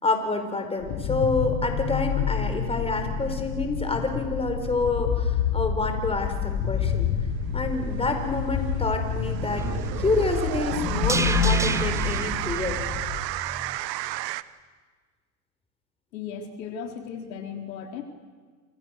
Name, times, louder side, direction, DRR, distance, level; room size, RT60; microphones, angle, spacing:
voice 1, 0.0-7.1 7.5-9.7 10.0-12.8, left 3 dB, 10° left, 6 dB, 4.4 m, -28 dB
sound 1, 0.8-13.2, left 7 dB, 50° left, 4.9 m, -28 dB
sound 2, 6.6-14.4, right 16 dB, 80° right, 1.2 m, -33 dB
sound 3, 9.6-13.8 14.1-14.2, right 3 dB, 5° right, 0.8 m, -33 dB
voice 2, 16.1-18.0, left 7 dB, 80° left, 3 dB, 4.3 m, -36 dB
28.0 x 27.5 x 6.6 m, 1.5 s
supercardioid pair, 115°, 49 cm